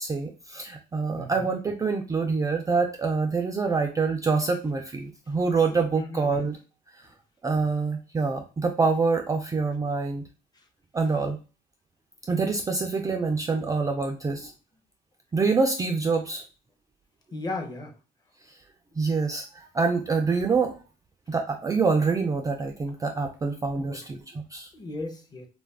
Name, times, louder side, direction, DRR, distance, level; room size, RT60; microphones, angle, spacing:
voice 1, 0.0-6.6 7.4-10.2 10.9-11.4 12.3-14.5 15.3-16.4 19.0-20.8 21.3-24.7, right 4 dB, 20° right, 3 dB, 0.3 m, -26 dB
voice 2, 1.2-1.5 6.0-6.4 17.3-17.9 23.8-24.0 24.7-25.5, left 2 dB, 25° left, 3 dB, 0.7 m, -35 dB
2.3 x 2.2 x 3.3 m, 0.33 s
cardioid pair, 110°, 17 cm